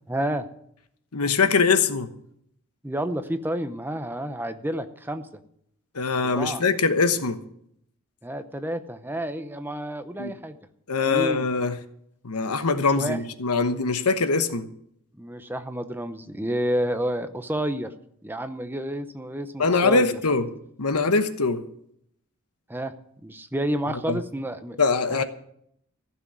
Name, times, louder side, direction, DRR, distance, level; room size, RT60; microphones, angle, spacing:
voice 1, 0.1-0.4 2.8-5.3 6.2-6.6 8.2-10.6 11.1-11.5 12.9-13.2 15.2-17.9 18.2-20.2 22.7-22.9 23.2-24.8 25.1-25.2, right 1 dB, 10° right, 0.7 m, -30 dB
voice 2, 1.1-2.1 5.9-7.4 10.2-10.3 10.9-11.8 12.2-14.7 19.6-20.5 20.8-21.6 23.9-24.2 24.8-25.2, left 4 dB, 90° left, 1.1 m, -23 dB
15.0 x 6.2 x 9.4 m
head